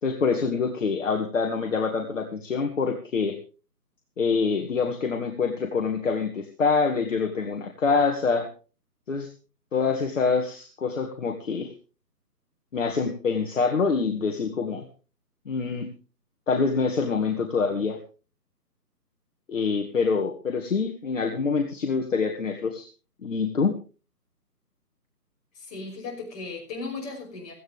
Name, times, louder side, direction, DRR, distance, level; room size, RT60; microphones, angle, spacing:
voice 1, 0.0-3.4 4.2-8.5 9.1-9.3 9.7-11.7 12.7-14.8 15.5-15.9 16.5-18.0 19.5-22.9 23.2-23.7, left 5 dB, 50° left, 2 dB, 2.1 m, -25 dB
voice 2, 25.5-27.5, left 3 dB, 25° left, -1 dB, 5.8 m, -36 dB
17.5 x 15.0 x 3.5 m, 0.35 s
figure-of-eight pair, 155°, 49 cm